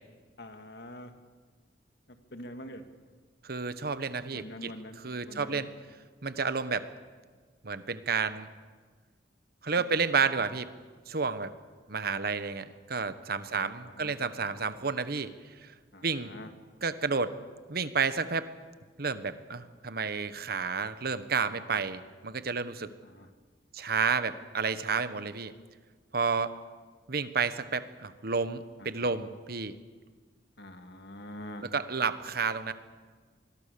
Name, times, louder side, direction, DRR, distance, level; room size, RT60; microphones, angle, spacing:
voice 1, 0.4-1.1 2.3-2.8 4.3-5.0 5.3-5.7 9.8-9.9 13.4-14.1 15.9-16.5 21.0-21.2 21.5-21.6 23.0-23.3 28.8-29.1 30.6-31.7, left 1 dB, 65° left, 7 dB, 2.1 m, -45 dB
voice 2, 3.4-5.7 6.2-6.9 7.6-8.5 9.6-10.7 11.1-11.5 11.9-15.3 15.6-15.7 16.0-16.3 16.8-17.3 17.7-18.5 19.0-22.9 23.7-25.5 26.1-26.5 27.1-29.7 31.6-32.7, right 5 dB, 60° right, 12 dB, 1.2 m, -31 dB
26.0 x 21.5 x 6.9 m, 1.5 s
head